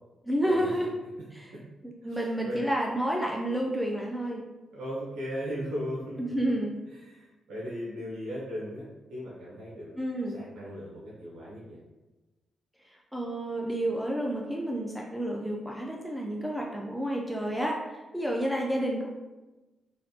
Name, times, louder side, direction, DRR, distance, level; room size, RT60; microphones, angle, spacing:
voice 1, 0.3-0.9 1.3-1.5 1.8-4.5 6.2-6.7 10.0-10.4 13.1-19.1, right 1 dB, 5° right, -1 dB, 0.4 m, -30 dB
voice 2, 2.1-2.6 4.7-6.4 7.0-8.8 9.1-9.9 10.3-11.8, equal, 80° right, -7 dB, 0.8 m, -37 dB
3.2 x 2.6 x 2.7 m, 1.1 s
cardioid pair, 65°, 0 cm